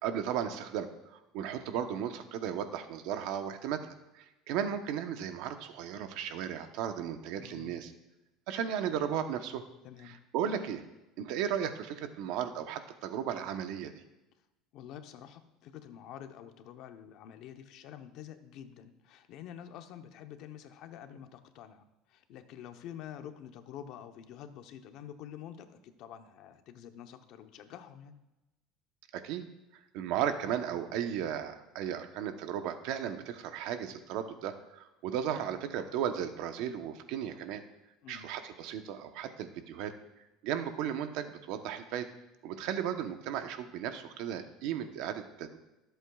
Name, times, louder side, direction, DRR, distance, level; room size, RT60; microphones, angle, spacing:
voice 1, 0.0-0.9 1.3-7.9 8.5-9.6 10.0-10.8 11.2-13.9 29.1-29.4 29.9-37.6 38.1-39.9 40.4-42.1 42.4-45.6, right 9 dB, 60° right, 8 dB, 0.9 m, -35 dB
voice 2, 7.4-7.9 9.8-10.2 14.7-28.1 38.0-38.3, left 9 dB, 50° left, 7 dB, 0.8 m, -48 dB
23.0 x 8.0 x 2.4 m, 0.98 s
cardioid pair, 165°, 0 cm